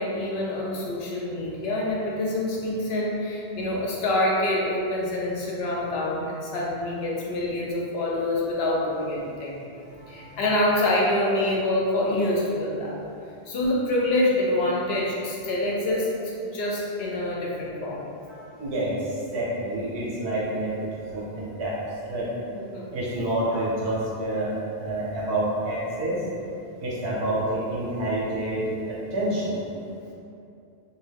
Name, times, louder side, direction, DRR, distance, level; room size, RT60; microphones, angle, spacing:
voice 1, 0.0-9.6 10.1-13.0 13.5-18.0 22.5-22.9 23.5-23.6, left 1 dB, 75° left, -4 dB, 0.8 m, -26 dB
voice 2, 10.0-10.4 18.3-20.7 21.1-21.7 22.1-22.3 22.9-24.5 24.7-26.2 26.8-29.6, right 1 dB, 90° right, -7 dB, 1.1 m, -28 dB
2.5 x 2.2 x 3.3 m, 2.6 s
omnidirectional pair, 1.1 m